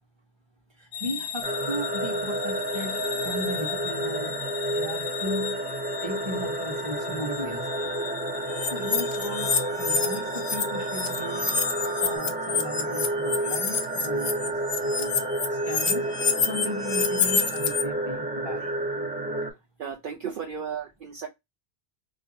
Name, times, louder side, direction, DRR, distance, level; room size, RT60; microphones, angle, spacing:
voice 1, 0.7-4.3 4.7-5.6 6.0-7.9 8.7-11.6 12.0-15.2 15.5-16.1 16.5-18.7, equal, 25° right, 1.0 m, -36 dB
sound 1, 0.9-12.1, left 9 dB, 85° left, 0.9 m, -38 dB
sound 2, 1.4-19.5, right 1 dB, 10° right, 0.5 m, -30 dB
sound 3, 8.6-10.6 10.9-17.8, left 5 dB, 45° left, 0.6 m, -27 dB
voice 2, 19.8-21.3, right 7 dB, 60° right, 0.7 m, -34 dB
2.6 x 2.4 x 3.9 m
omnidirectional pair, 1.1 m